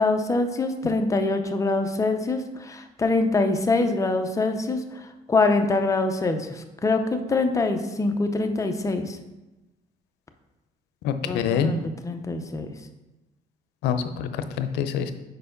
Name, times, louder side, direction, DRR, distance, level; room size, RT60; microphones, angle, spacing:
voice 1, 0.0-4.8 5.3-9.2 11.2-12.7, left 3 dB, 20° left, 6 dB, 0.6 m, -24 dB
voice 2, 11.0-11.8 13.8-15.1, left 7 dB, 85° left, 9 dB, 0.5 m, -26 dB
4.7 x 4.7 x 5.1 m, 1.0 s
cardioid pair, 110°, 17 cm